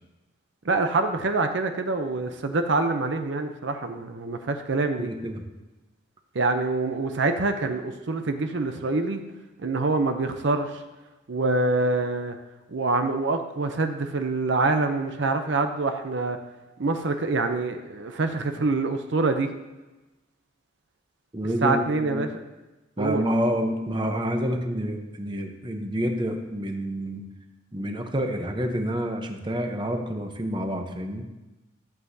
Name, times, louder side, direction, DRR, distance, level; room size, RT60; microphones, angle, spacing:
voice 1, 0.6-5.1 6.3-9.2 9.6-10.8 11.3-12.4 12.7-16.4 16.8-19.5 21.6-22.3 23.0-23.3, right 3 dB, 60° right, 6 dB, 0.6 m, -25 dB
voice 2, 5.0-5.4 21.3-22.3 23.0-27.2 27.7-31.3, equal, 25° right, 4 dB, 0.8 m, -28 dB
14.5 x 7.8 x 2.7 m, 1.1 s
head